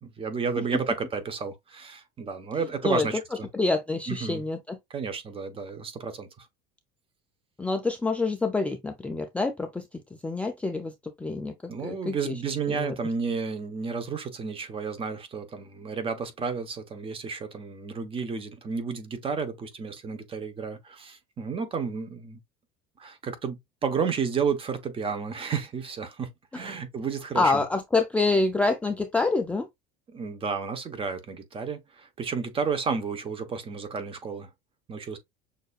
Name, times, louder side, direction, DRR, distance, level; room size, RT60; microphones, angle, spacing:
voice 1, 0.0-3.5 4.1-4.4 4.9-6.5 11.7-22.4 23.0-27.6 30.1-34.5 34.9-35.2, right 5 dB, 25° right, 1.0 m, -32 dB
voice 2, 3.5-4.8 7.6-11.5 11.8-12.4 12.7-13.1 26.5-26.6 27.3-29.7, left 3 dB, 5° left, 0.4 m, -27 dB
6.4 x 2.6 x 2.3 m
cardioid pair, 135°, 21 cm